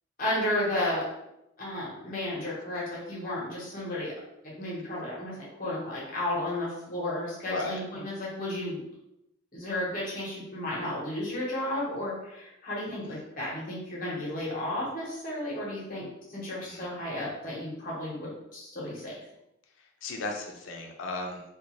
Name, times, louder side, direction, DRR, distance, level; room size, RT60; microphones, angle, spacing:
voice 1, 0.2-1.1 1.6-4.1 4.4-8.8 9.5-19.1, left 1 dB, 40° left, -6 dB, 0.9 m, -33 dB
voice 2, 7.5-7.8 13.1-13.2 16.6-16.8 20.0-21.4, left 2 dB, 70° left, 2 dB, 0.4 m, -35 dB
2.4 x 2.2 x 2.9 m, 0.85 s
head